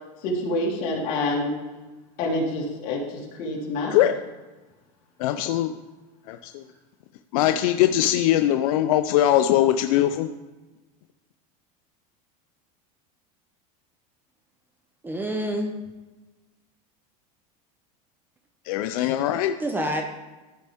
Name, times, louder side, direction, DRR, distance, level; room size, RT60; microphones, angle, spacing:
voice 1, 0.2-1.5 2.2-3.9, left 1 dB, 50° left, -3 dB, 2.7 m, -27 dB
voice 2, 5.2-5.8 6.3-6.6 7.3-10.3 18.6-19.6, left 12 dB, 75° left, 8 dB, 0.5 m, -21 dB
voice 3, 15.0-15.7 19.0-19.2 19.6-20.0, equal, 10° right, 4 dB, 0.6 m, -28 dB
14.0 x 5.2 x 3.5 m, 1.2 s
supercardioid pair, 150°, 18 cm